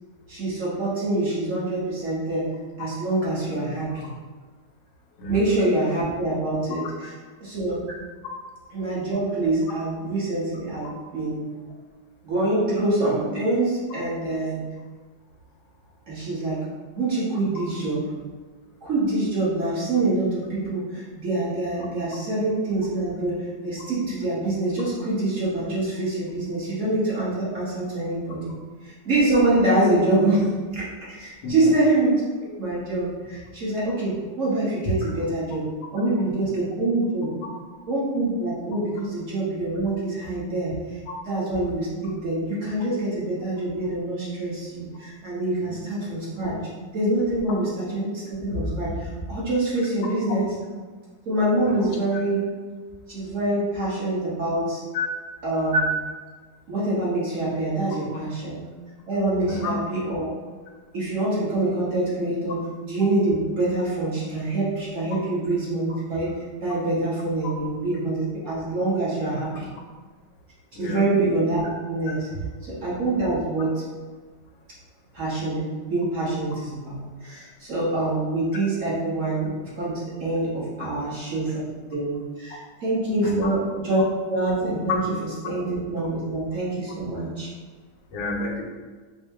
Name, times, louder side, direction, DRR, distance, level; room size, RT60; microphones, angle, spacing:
voice 1, 0.3-2.4 2.8-4.1 5.3-7.2 7.4-7.8 8.7-10.9 11.1-11.5 12.2-14.6 16.1-16.6 16.9-18.0 18.8-28.5 28.8-35.6 35.9-37.3 37.9-41.0 41.2-46.5 46.9-50.5 51.2-52.4 53.1-54.8 55.4-55.9 56.7-58.6 59.1-60.3 60.9-69.7 70.7-72.3 72.6-73.8 75.1-81.6 81.9-85.0 85.4-87.5, right 2 dB, 45° right, -8 dB, 1.3 m, -25 dB
voice 2, 5.2-5.6 31.4-31.5 45.6-45.8 51.6-51.9 54.9-55.1 59.5-59.7 70.7-71.0 80.8-80.9 83.2-83.5 88.1-88.6, equal, 90° left, 0 dB, 1.4 m, -29 dB
4.4 x 2.1 x 3.4 m, 1.5 s
omnidirectional pair, 2.0 m